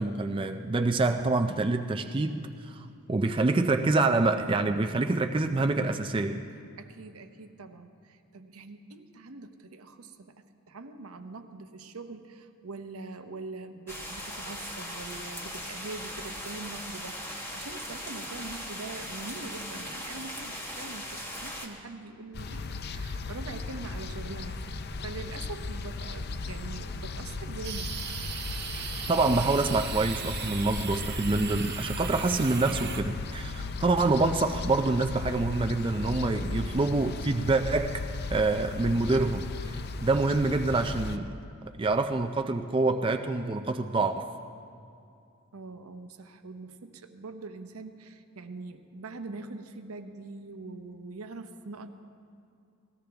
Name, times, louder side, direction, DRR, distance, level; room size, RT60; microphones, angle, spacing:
voice 1, 0.0-6.4 29.1-38.0 38.3-41.3 41.8-44.3, right 3 dB, 25° right, 6 dB, 0.4 m, -26 dB
voice 2, 6.8-24.6 25.0-27.9 36.5-36.8 45.5-51.9, right 3 dB, 90° right, 8 dB, 0.8 m, -43 dB
sound 1, 13.9-21.7, equal, 10° left, 1.3 m, -39 dB
sound 2, 22.3-41.2, left 3 dB, 45° left, 0.5 m, -36 dB
sound 3, 27.6-33.0, right 7 dB, 50° right, 1.0 m, -38 dB
19.0 x 15.0 x 3.5 m, 2.5 s
head